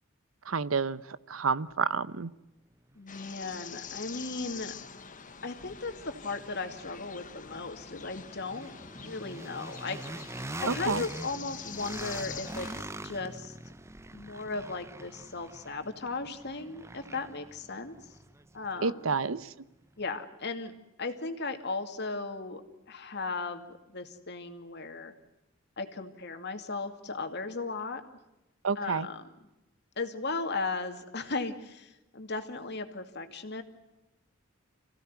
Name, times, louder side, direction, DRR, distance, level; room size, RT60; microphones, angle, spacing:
voice 1, 0.5-1.0 1.3-2.3 10.7-11.0 18.8-19.4 28.6-29.1, right 5 dB, 90° right, 16 dB, 0.8 m, -29 dB
sound 1, 2.9-3.0 3.5-19.4, right 2 dB, 15° right, 0.8 m, -44 dB
voice 2, 3.0-4.7 5.4-8.7 9.0-10.0 10.6-12.7 13.0-13.6 14.1-17.9 18.5-19.1 20.0-20.7 21.0-22.6 22.9-25.1 25.8-28.0 28.8-29.3 30.0-33.6, left 3 dB, 55° left, 6 dB, 2.5 m, -36 dB
sound 2, 3.1-12.8, left 7 dB, 40° left, 1.2 m, -45 dB
27.5 x 16.5 x 9.6 m, 0.99 s
head